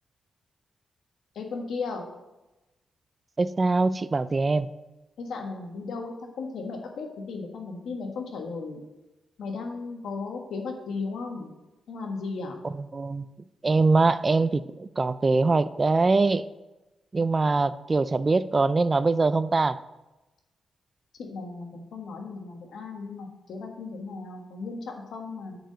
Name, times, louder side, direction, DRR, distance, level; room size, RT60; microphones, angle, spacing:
voice 1, 1.3-2.0 5.2-8.8 9.4-11.5 11.9-12.5 21.2-25.6, left 4 dB, 80° left, 2 dB, 1.4 m, -35 dB
voice 2, 3.4-4.7 12.7-13.3 13.6-16.4 17.1-19.8, right 3 dB, 40° right, 15 dB, 0.4 m, -23 dB
8.9 x 4.8 x 6.5 m, 1.0 s
supercardioid pair, 55°, 0 cm